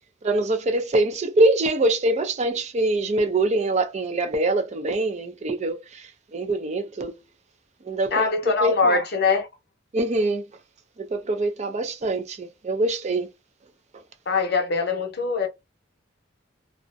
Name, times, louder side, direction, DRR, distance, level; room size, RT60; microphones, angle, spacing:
voice 1, 0.2-7.2 7.9-8.3 8.6-9.0 9.9-10.4 11.0-13.3, right 2 dB, 35° right, 0.4 m, -24 dB
voice 2, 8.1-9.5 14.3-15.5, left 4 dB, 55° left, 0.7 m, -22 dB
2.4 x 2.1 x 2.5 m
head